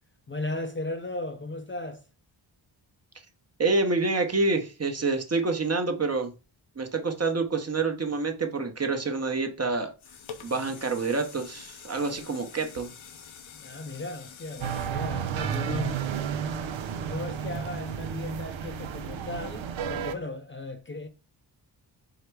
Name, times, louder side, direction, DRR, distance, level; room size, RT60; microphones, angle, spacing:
voice 1, 0.3-2.0 11.9-12.3 13.5-16.0 16.9-21.1, left 2 dB, 25° left, 0.6 m, -36 dB
voice 2, 3.6-6.3 6.8-9.9 10.4-12.9, right 3 dB, 30° right, 0.9 m, -27 dB
sound 1, 10.0-16.0 16.5-16.6, left 7 dB, 70° left, 0.9 m, -47 dB
sound 2, 14.6-20.2, right 7 dB, 65° right, 0.7 m, -32 dB
4.8 x 2.2 x 4.6 m
cardioid pair, 55°, 50 cm